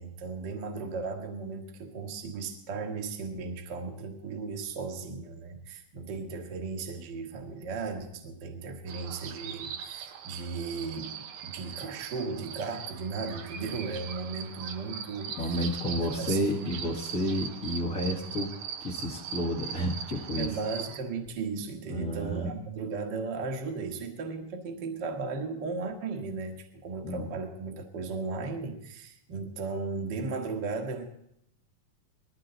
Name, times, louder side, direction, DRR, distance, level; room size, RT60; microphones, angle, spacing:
voice 1, 0.0-15.4 16.0-16.8 20.4-31.0, right 4 dB, 40° right, 3 dB, 1.8 m, -36 dB
sound 1, 8.9-21.0, right 8 dB, 70° right, 2.3 m, -41 dB
voice 2, 15.4-18.5 18.8-20.5 21.9-22.5 27.0-27.3, equal, 40° left, -1 dB, 1.3 m, -31 dB
20.5 x 14.0 x 4.0 m, 0.74 s
omnidirectional pair, 3.8 m